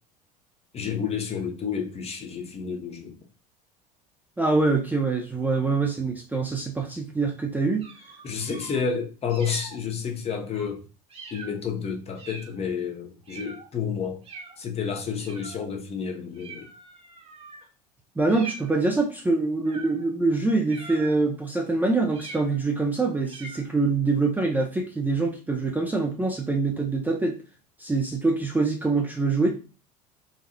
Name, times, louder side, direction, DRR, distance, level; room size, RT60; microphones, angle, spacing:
voice 1, 0.7-3.1 8.2-10.8 11.3-14.2 14.6-16.7, left 6 dB, 30° left, 0.8 m, -30 dB
voice 2, 4.4-7.9 18.2-27.4 27.8-29.5, right 3 dB, 10° right, 0.5 m, -24 dB
sound 1, 7.8-8.8 9.3-9.8 10.5-10.7 11.1-11.6 12.2-12.6 13.3-13.7 14.2-14.6 15.2-15.7 16.3-17.7 18.3-19.0 19.7-20.1 20.7-21.3 22.1-22.8 23.2-23.7, right 4 dB, 30° right, 1.0 m, -43 dB
4.1 x 2.3 x 2.7 m
hypercardioid pair, 70°, 21 cm